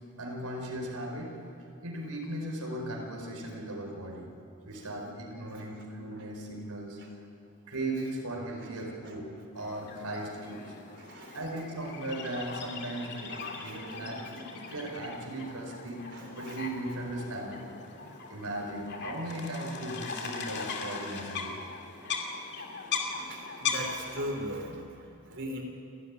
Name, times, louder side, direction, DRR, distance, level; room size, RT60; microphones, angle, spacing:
voice 1, 0.2-1.3 1.8-4.3 4.6-7.0 7.7-10.7 11.3-14.2 14.7-16.1 16.4-17.6 18.3-21.5, right 1 dB, 90° right, -1 dB, 4.8 m, -37 dB
voice 2, 4.1-4.4 4.7-5.1 5.5-5.6 6.1-6.2 7.0-7.1 8.6-8.7 9.0-9.2 11.0-11.4 12.9-15.0 16.1-16.6 18.0-18.2 22.6-22.8 23.2-25.6, equal, 55° right, 2 dB, 3.9 m, -42 dB
sound 1, 9.5-24.3, left 5 dB, 50° left, 2.4 m, -39 dB
29.5 x 12.5 x 10.0 m, 2.5 s
head